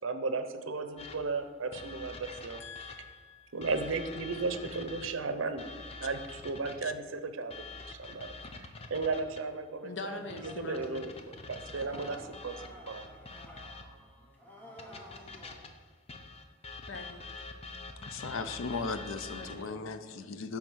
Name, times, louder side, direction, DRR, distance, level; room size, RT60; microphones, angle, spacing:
voice 1, 0.0-2.6 3.5-5.7 6.0-11.1 11.5-12.6 12.9-13.1, right 3 dB, 90° right, 9 dB, 0.7 m, -35 dB
sound 1, 1.0-3.2 3.6-7.0 7.5-9.6 10.3-14.1 14.8-19.7, left 3 dB, 30° left, 0.6 m, -46 dB
voice 2, 2.6-3.7 9.8-11.1 16.9-17.2 19.3-19.8, left 3 dB, 65° left, 5 dB, 0.8 m, -43 dB
sound 2, 10.1-15.6, equal, 10° left, 1.1 m, -52 dB
voice 3, 18.0-20.6, left 4 dB, 90° left, 9 dB, 0.5 m, -37 dB
9.6 x 3.6 x 6.2 m, 1.5 s
head